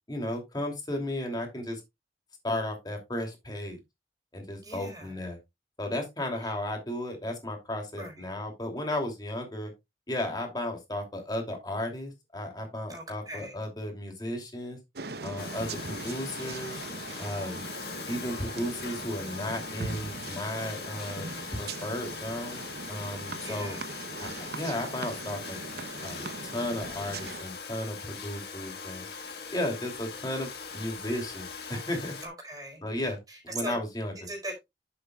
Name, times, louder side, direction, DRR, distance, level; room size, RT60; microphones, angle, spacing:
voice 1, 0.1-1.8 2.4-3.8 4.3-5.4 5.8-9.7 10.1-14.8 15.2-16.8 17.2-17.6 18.1-21.2 21.5-23.8 24.2-25.6 26.0-29.1 29.5-32.1 32.8-33.2 33.4-34.1, left 1 dB, 25° left, 2.8 m, -34 dB
voice 2, 4.6-5.1 8.0-8.2 12.9-13.6 23.4-23.9 32.2-32.8 33.3-33.8 34.3-34.6, right 1 dB, 20° right, 4.4 m, -39 dB
sound 1, 14.9-27.4, right 3 dB, 65° right, 0.8 m, -40 dB
Domestic sounds home sounds, 15.4-32.3, left 5 dB, 60° left, 1.6 m, -41 dB
10.5 x 7.9 x 2.4 m
head